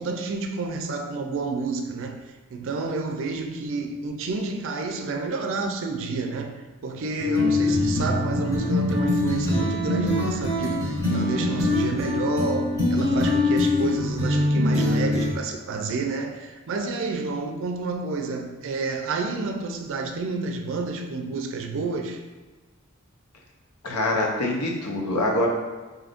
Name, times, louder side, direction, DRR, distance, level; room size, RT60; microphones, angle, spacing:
voice 1, 0.0-22.2, right 4 dB, 60° right, 4 dB, 0.4 m, -30 dB
sound 1, 7.2-15.3, left 2 dB, 15° left, 1.2 m, -23 dB
voice 2, 23.8-25.5, left 1 dB, 90° left, -1 dB, 0.7 m, -24 dB
4.9 x 2.7 x 2.5 m, 1.3 s
head